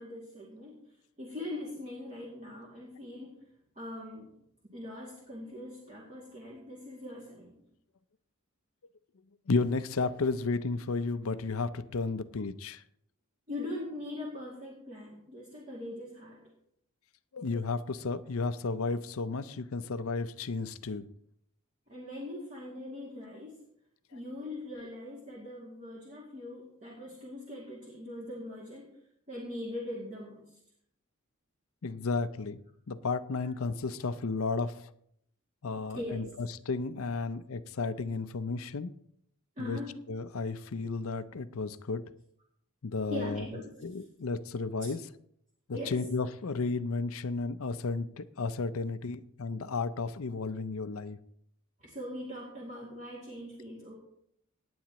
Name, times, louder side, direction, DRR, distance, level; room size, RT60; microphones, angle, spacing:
voice 1, 0.0-3.4 3.8-4.3 4.7-7.6 13.5-16.4 21.9-23.6 24.1-28.9 29.3-30.6 33.4-33.5 35.9-36.3 39.6-39.9 43.1-44.1 44.8-44.9 45.7-46.1 51.8-53.9, left 1 dB, 35° right, 2.4 m, -41 dB
voice 2, 9.5-12.8 17.3-21.0 31.8-32.6 32.9-34.7 35.6-36.2 36.7-38.9 39.6-39.8 40.1-42.0 42.8-43.4 43.8-45.0 45.7-51.2, left 4 dB, 70° left, 0.6 m, -33 dB
17.5 x 9.4 x 3.0 m
head